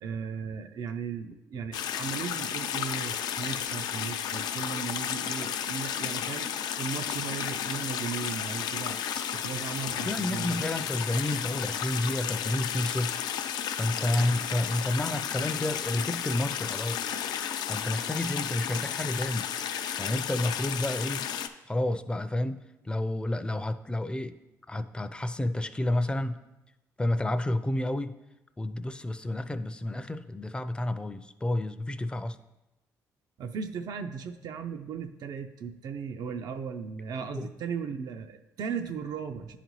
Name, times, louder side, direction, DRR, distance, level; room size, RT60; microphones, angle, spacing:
voice 1, 0.0-10.6 14.1-14.4 33.4-39.6, right 6 dB, 65° right, 6 dB, 0.4 m, -37 dB
sound 1, 1.7-21.5, left 9 dB, 70° left, 0.4 m, -33 dB
voice 2, 10.0-13.2 13.8-17.1 17.7-21.3 21.7-24.4 24.7-26.4 27.0-28.2 28.6-32.4 37.3-37.5, left 1 dB, 15° left, 11 dB, 0.4 m, -30 dB
10.0 x 4.0 x 3.0 m, 0.98 s
supercardioid pair, 70°, 7 cm